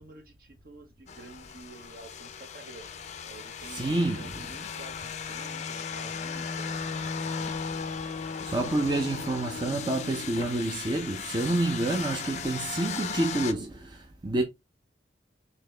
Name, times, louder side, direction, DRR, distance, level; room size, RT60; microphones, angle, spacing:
voice 1, 0.0-2.9 3.3-6.8 7.3-7.5, right 3 dB, 55° right, 1.0 m, -49 dB
sound 1, 1.1-13.5, left 6 dB, 40° left, 0.4 m, -36 dB
voice 2, 3.7-4.3 8.4-14.4, right 2 dB, 25° right, 0.5 m, -28 dB
4.0 x 2.8 x 3.2 m
head